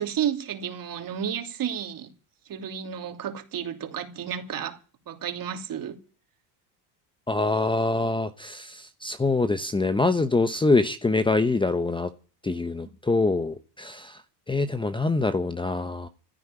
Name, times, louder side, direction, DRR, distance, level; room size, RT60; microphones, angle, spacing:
voice 1, 0.0-2.1 2.5-4.8 5.1-6.0, right 9 dB, 45° right, 2.8 m, -32 dB
voice 2, 7.3-12.1 12.4-14.2 14.5-16.1, left 3 dB, 10° left, 0.8 m, -25 dB
15.5 x 8.2 x 9.9 m
supercardioid pair, 110°, 47 cm